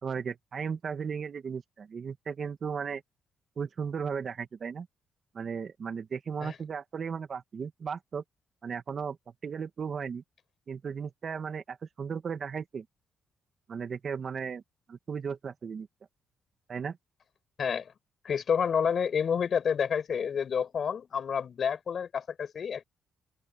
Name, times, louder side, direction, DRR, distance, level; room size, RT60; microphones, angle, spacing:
voice 1, 0.0-3.0 3.6-4.9 5.3-8.2 8.6-9.2 9.4-10.2 10.7-12.9 13.7-14.6 14.9-15.9 16.7-17.0, right 6 dB, 50° right, 2.4 m, -35 dB
voice 2, 17.6-17.9 18.2-22.8, left 7 dB, 55° left, 7.5 m, -29 dB
cardioid pair, 75°, 0 cm